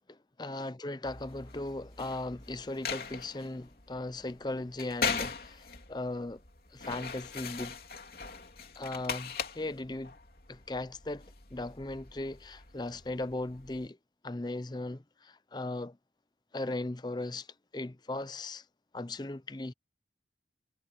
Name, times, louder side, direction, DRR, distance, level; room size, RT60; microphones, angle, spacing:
voice 1, 0.1-6.4 6.7-7.7 8.8-10.1 10.5-11.2 11.5-14.0 14.2-16.0 16.5-17.5 17.7-18.6 18.9-19.7, left 2 dB, 25° left, 0.6 m, -37 dB
sound 1, 1.0-13.9, left 5 dB, 55° left, 3.6 m, -40 dB
head